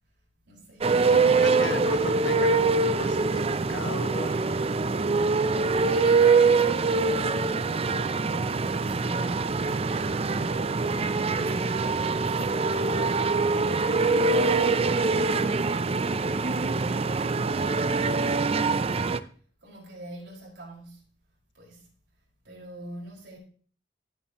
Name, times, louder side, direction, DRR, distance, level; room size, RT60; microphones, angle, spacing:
voice 1, 0.4-1.7 5.8-10.3 10.8-21.1 21.5-21.9 22.4-23.4, right 1 dB, 65° right, 5.1 m, -46 dB
sound 1, 0.8-19.2, right 4 dB, 30° right, 0.5 m, -24 dB
voice 2, 1.0-3.4 3.7-4.6, left 3 dB, 70° left, 1.0 m, -37 dB
16.0 x 8.5 x 3.0 m
head